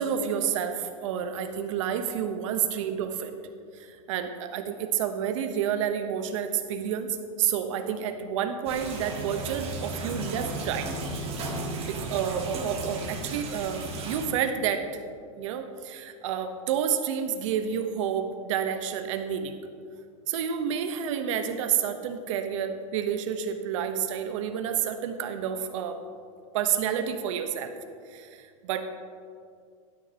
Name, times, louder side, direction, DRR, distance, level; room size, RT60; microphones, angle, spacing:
voice 1, 0.0-3.3 3.7-7.1 7.4-10.9 11.9-14.8 15.4-19.6 20.3-26.0 26.5-27.7 28.1-28.8, right 8 dB, 65° right, 7 dB, 1.0 m, -29 dB
sound 1, 8.7-14.3, right 2 dB, 35° right, 1.9 m, -35 dB
12.0 x 9.7 x 2.9 m, 2.3 s
hypercardioid pair, 115°, 17 cm